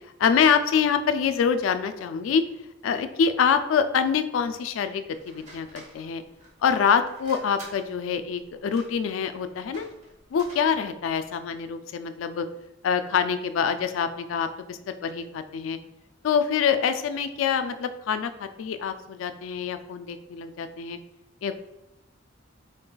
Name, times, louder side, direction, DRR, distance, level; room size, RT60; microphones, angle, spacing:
voice 1, 0.2-2.4 2.8-6.2 6.6-9.9 10.3-12.5 12.8-15.8 16.2-21.0 21.4-21.6, left 6 dB, 80° left, 10 dB, 0.3 m, -25 dB
sound 1, 5.1-11.5, right 2 dB, 40° right, 1.1 m, -50 dB
3.9 x 3.8 x 2.2 m, 0.91 s
head